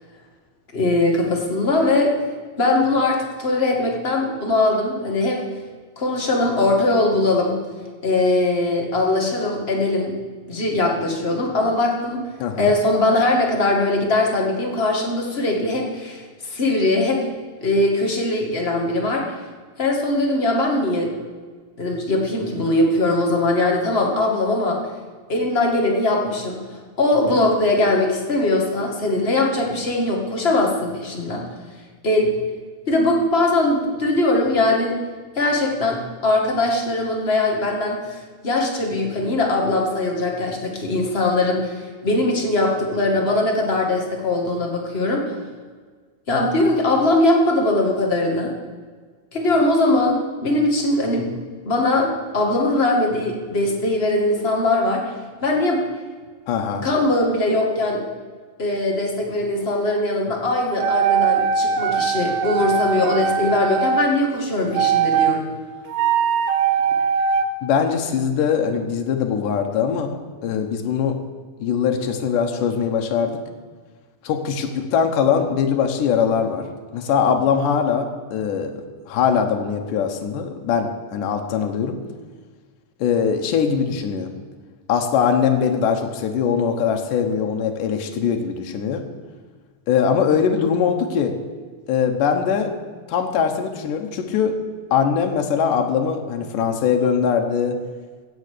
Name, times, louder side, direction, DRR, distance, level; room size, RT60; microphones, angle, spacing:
voice 1, 0.7-2.1 2.6-5.4 6.0-7.6 8.0-10.1 10.5-12.2 12.6-17.2 17.6-19.2 19.8-21.1 21.8-24.8 25.3-26.6 27.0-31.4 32.0-32.3 32.9-35.0 35.3-45.3 46.3-48.5 49.3-55.1 55.4-55.8 56.8-58.0 58.6-65.5, left 2 dB, 25° left, 0 dB, 1.7 m, -21 dB
voice 2, 12.4-12.7 56.5-56.9 67.6-71.2 71.6-73.4 74.2-76.7 76.9-78.7 79.1-82.0 83.0-84.3 84.9-89.0 89.9-91.4 91.9-92.7 93.1-94.6 94.9-97.8, left 7 dB, 85° left, 4 dB, 2.7 m, -21 dB
sound 1, 60.7-64.1 64.7-65.4 65.9-67.4, right 7 dB, 90° right, 2.5 m, -20 dB
15.0 x 8.2 x 6.7 m, 1.5 s
omnidirectional pair, 3.6 m